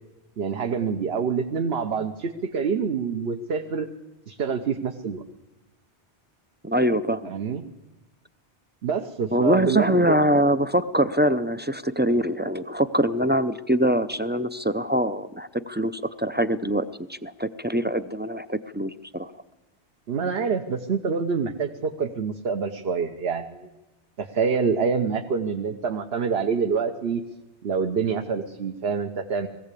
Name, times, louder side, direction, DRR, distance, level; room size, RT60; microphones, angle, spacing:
voice 1, 0.4-3.9 4.3-5.2 7.3-7.6 8.8-10.3 20.1-23.7 24.2-27.2 27.6-29.5, right 5 dB, 65° right, 5 dB, 1.2 m, -26 dB
voice 2, 6.6-7.3 9.3-19.3, right 1 dB, 15° right, 12 dB, 0.3 m, -24 dB
20.5 x 15.5 x 8.4 m, 1.0 s
omnidirectional pair, 1.1 m